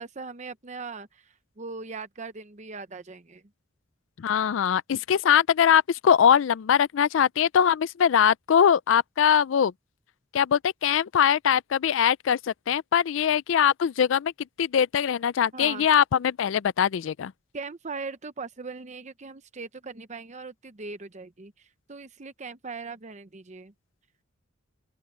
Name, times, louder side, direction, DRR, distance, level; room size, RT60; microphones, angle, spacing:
voice 1, 0.0-3.4 15.5-15.9 17.5-23.7, right 4 dB, 35° right, 0.8 m, -39 dB
voice 2, 4.2-9.7 10.3-12.4 12.7-14.3 14.6-17.3, left 8 dB, 70° left, 0.4 m, -22 dB
open air
head